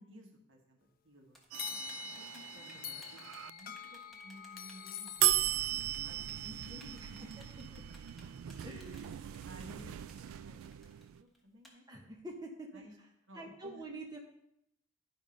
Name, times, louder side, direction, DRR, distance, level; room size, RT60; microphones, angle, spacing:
voice 1, 0.0-1.4 2.2-5.7 6.0-7.2 8.6-10.6 10.8-11.8 12.7-12.9 13.3-13.8, equal, 65° right, 1 dB, 1.7 m, -55 dB
Typing, 1.3-11.7, equal, ahead, 1.4 m, -60 dB
sound 1, 1.5-7.7, left 8 dB, 45° left, 0.7 m, -47 dB
sound 2, 1.5-3.5 5.2-11.2, right 14 dB, 85° right, 0.3 m, -37 dB
voice 2, 7.2-7.8 8.6-8.8 11.9-12.8 13.3-14.2, right 1 dB, 20° right, 0 dB, 1.0 m, -46 dB
12.0 x 5.2 x 5.2 m, 0.79 s
head